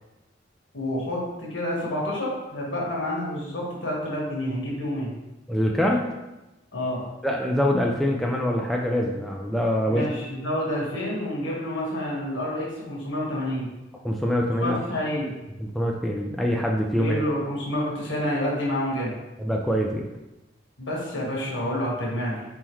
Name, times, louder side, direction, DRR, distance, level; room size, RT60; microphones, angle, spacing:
voice 1, 0.7-5.1 6.7-7.0 9.9-13.7 14.6-15.3 17.0-19.1 20.8-22.4, left 1 dB, 80° left, -4 dB, 1.4 m, -28 dB
voice 2, 5.5-6.0 7.2-10.1 14.0-14.8 15.6-17.2 19.4-20.1, equal, ahead, -1 dB, 0.3 m, -24 dB
4.2 x 3.7 x 3.0 m, 1.0 s
head